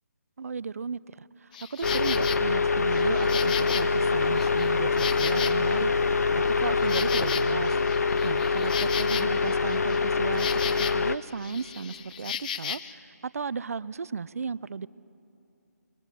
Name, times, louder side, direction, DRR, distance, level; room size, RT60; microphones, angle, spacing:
voice 1, 0.4-5.9 6.3-7.8 8.2-14.9, right 5 dB, 55° right, 20 dB, 0.5 m, -35 dB
Insect, 1.5-2.4 2.9-5.9 6.3-11.1 11.4-12.9, left 8 dB, 30° left, 0.7 m, -36 dB
sound 1, 1.8-11.2, left 4 dB, 65° left, 0.6 m, -25 dB
sound 2, 3.7-12.2, right 6 dB, 30° right, 1.2 m, -51 dB
21.5 x 21.5 x 7.0 m, 2.9 s
figure-of-eight pair, 150°, 9 cm